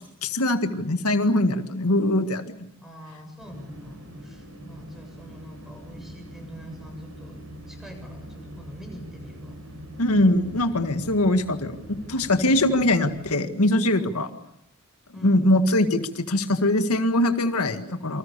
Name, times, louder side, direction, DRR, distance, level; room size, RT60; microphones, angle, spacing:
voice 1, 0.2-2.7 10.0-14.3 15.2-18.2, left 1 dB, 90° left, 8 dB, 1.9 m, -22 dB
voice 2, 2.8-9.6 13.9-14.2 15.1-15.5, equal, ahead, 4 dB, 7.5 m, -44 dB
sound 1, 3.4-13.2, equal, 65° right, 5.9 m, -42 dB
28.0 x 25.0 x 6.9 m, 0.75 s
head